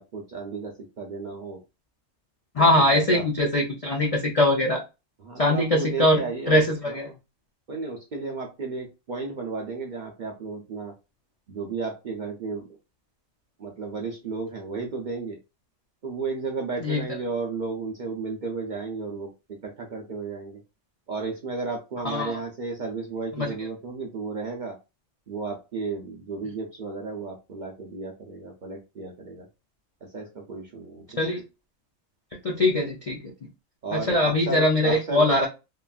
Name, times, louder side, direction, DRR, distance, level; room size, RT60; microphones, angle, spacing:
voice 1, 0.0-1.6 2.6-3.2 5.2-6.6 6.9-7.2 7.7-10.9 11.5-12.8 13.6-15.4 16.0-19.3 19.6-20.6 21.1-24.8 25.3-29.5 30.1-31.3 33.8-35.5, right 4 dB, 60° right, 0 dB, 0.5 m, -33 dB
voice 2, 2.6-4.8 5.4-7.0 16.8-17.0 22.0-22.4 23.4-23.5 31.2-31.4 32.4-33.2 33.9-35.5, left 1 dB, 70° left, 0 dB, 0.3 m, -22 dB
2.9 x 2.5 x 2.3 m, 0.27 s
omnidirectional pair, 1.4 m